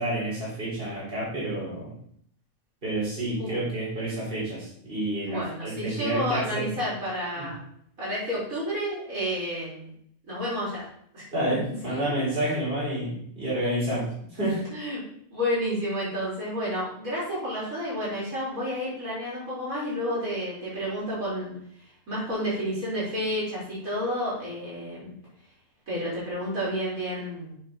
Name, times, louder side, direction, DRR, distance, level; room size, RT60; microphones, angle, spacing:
voice 1, 0.0-1.9 2.8-6.7 7.4-7.5 11.3-14.6, right 1 dB, 40° right, -7 dB, 3.9 m, -29 dB
voice 2, 5.2-7.6 8.0-9.9 10.3-10.9 11.1-11.2 11.9-12.0 14.7-15.0 15.3-21.5 22.1-25.1 25.9-27.5, equal, 70° right, -8 dB, 4.6 m, -30 dB
8.1 x 6.5 x 4.0 m, 0.66 s
omnidirectional pair, 1.5 m